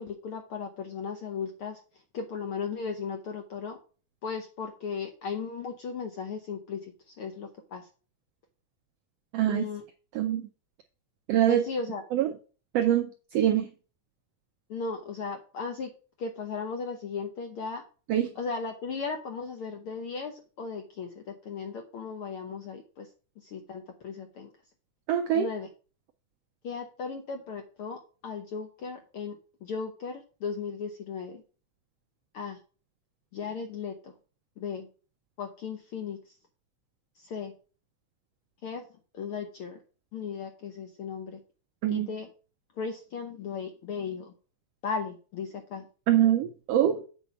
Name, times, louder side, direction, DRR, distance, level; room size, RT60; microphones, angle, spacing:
voice 1, 0.0-1.8 2.1-3.8 4.2-7.9 9.5-9.8 11.5-12.0 14.7-15.9 16.2-17.8 18.4-23.1 23.4-24.5 25.3-25.7 26.6-31.4 32.3-32.6 33.3-34.1 34.6-34.9 35.4-36.2 37.2-37.5 38.6-38.8 39.1-39.8 40.1-41.4 41.9-42.3 42.8-44.3 44.8-45.9, left 5 dB, 70° left, 1.3 m, -36 dB
voice 2, 9.3-9.7 10.1-10.4 11.3-11.6 12.1-12.3 12.7-13.1 13.3-13.7 18.1-18.3 25.1-25.5 41.8-42.1 46.1-47.1, right 11 dB, 80° right, 1.4 m, -24 dB
8.3 x 4.5 x 7.0 m
omnidirectional pair, 3.6 m